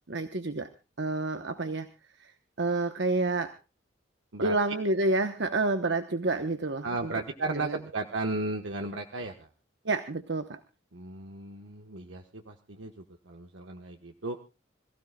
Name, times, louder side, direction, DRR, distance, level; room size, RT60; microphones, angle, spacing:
voice 1, 0.1-0.7 1.0-1.9 2.2-2.3 2.6-3.5 4.4-7.1 7.5-7.8 9.8-10.6, right 2 dB, 65° right, 8 dB, 1.0 m, -29 dB
voice 2, 6.8-9.5 10.9-12.9 13.3-14.4, right 2 dB, 80° right, 3 dB, 1.3 m, -35 dB
26.5 x 15.5 x 2.3 m, 0.30 s
head